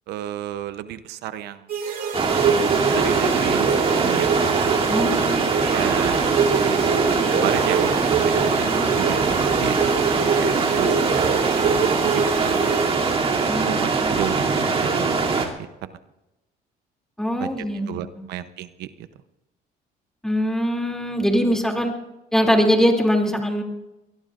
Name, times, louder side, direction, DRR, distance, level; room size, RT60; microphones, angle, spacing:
voice 1, 0.1-1.7 2.9-4.3 5.6-6.8 7.3-7.9 8.2-9.2 9.6-9.9 10.2-12.7 13.7-16.0 17.4-17.5 17.9-19.1, right 12 dB, 80° right, 12 dB, 0.8 m, -32 dB
sound 1, 1.7-13.5, right 6 dB, 60° right, 4.1 m, -25 dB
sound 2, 2.1-15.5, right 4 dB, 35° right, 2.8 m, -22 dB
voice 2, 4.9-5.6 13.5-13.7 14.0-14.1 17.2-18.3 20.2-21.9 22.3-23.6, equal, 5° left, 1 dB, 2.8 m, -22 dB
23.5 x 19.5 x 2.5 m, 1.0 s
cardioid pair, 110°, 17 cm